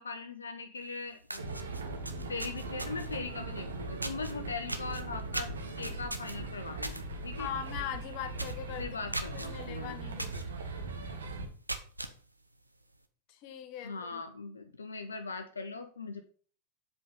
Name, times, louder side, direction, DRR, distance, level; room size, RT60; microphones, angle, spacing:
voice 1, 0.0-1.7 2.3-5.5 5.8-7.5 8.8-10.0 13.8-16.2, left 4 dB, 75° left, 6 dB, 0.7 m, -40 dB
sound 1, 0.8-0.9 1.2-3.2 4.0-4.3 4.7-7.0 7.4-7.6 7.9-8.0 8.3-8.6 9.1-9.5 10.2-10.4 10.9-11.0 11.5-12.1, right 1 dB, 85° right, 0.8 m, -38 dB
sound 2, 1.4-11.5, right 3 dB, 70° right, 1.6 m, -40 dB
voice 2, 7.4-8.9 9.3-10.5 13.3-14.2, left 9 dB, 45° left, 7 dB, 1.2 m, -41 dB
7.7 x 4.8 x 5.4 m, 0.43 s
figure-of-eight pair, 90°, 0 cm